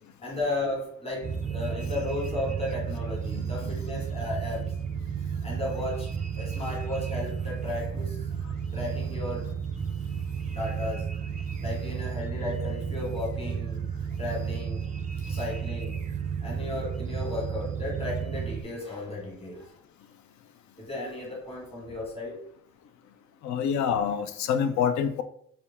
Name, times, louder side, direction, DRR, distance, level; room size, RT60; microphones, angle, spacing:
voice 1, 0.2-4.7 5.4-8.2 8.7-9.5 10.5-11.1 11.6-13.8 14.2-14.9 15.3-16.0 16.4-19.7 20.8-22.4, left 2 dB, 20° left, -3 dB, 1.4 m, -34 dB
sound 1, 1.2-18.6, right 7 dB, 25° right, 0.5 m, -32 dB
voice 2, 23.4-25.2, left 7 dB, 65° left, 10 dB, 0.5 m, -26 dB
4.3 x 2.4 x 3.5 m, 0.63 s
cardioid pair, 90°, 30 cm